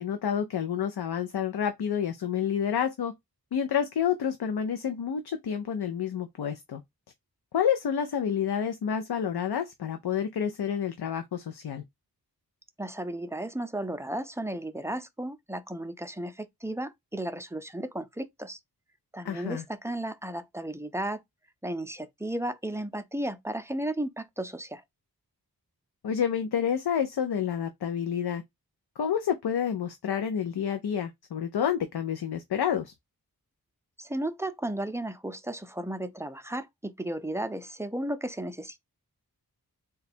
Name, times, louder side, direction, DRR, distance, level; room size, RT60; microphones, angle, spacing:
voice 1, 0.0-3.1 3.5-6.8 7.5-11.8 19.2-19.6 26.0-28.4 29.0-32.9, left 8 dB, 85° left, 0.6 m, -29 dB
voice 2, 12.8-18.6 19.1-21.2 21.6-24.8 34.0-38.8, right 1 dB, 5° right, 0.4 m, -34 dB
3.8 x 2.3 x 4.1 m
wide cardioid pair, 85°, 37 cm